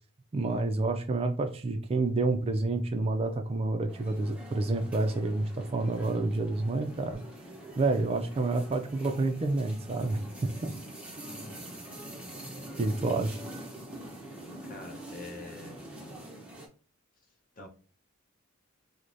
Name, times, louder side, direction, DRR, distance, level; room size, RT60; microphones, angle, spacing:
voice 1, 0.3-7.2 7.8-10.7 12.8-13.4, right 2 dB, 25° right, 6 dB, 0.3 m, -29 dB
sound 1, 3.9-16.7, right 1 dB, 5° right, 0.7 m, -45 dB
voice 2, 11.2-11.6 13.1-13.3 14.6-15.9 17.6-17.7, left 3 dB, 40° left, 3 dB, 0.7 m, -46 dB
4.6 x 2.1 x 2.6 m, 0.38 s
head